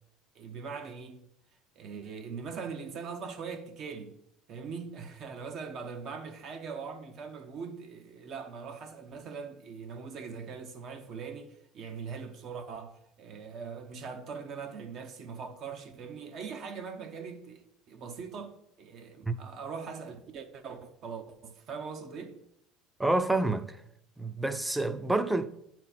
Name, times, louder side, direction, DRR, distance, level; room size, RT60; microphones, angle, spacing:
voice 1, 0.3-1.3 1.7-4.1 4.5-18.5 18.8-22.4, right 5 dB, 50° right, 1.0 m, -41 dB
voice 2, 23.0-23.8 24.2-25.5, right 2 dB, 5° right, 0.6 m, -28 dB
10.5 x 4.3 x 4.2 m
supercardioid pair, 115°, 0 cm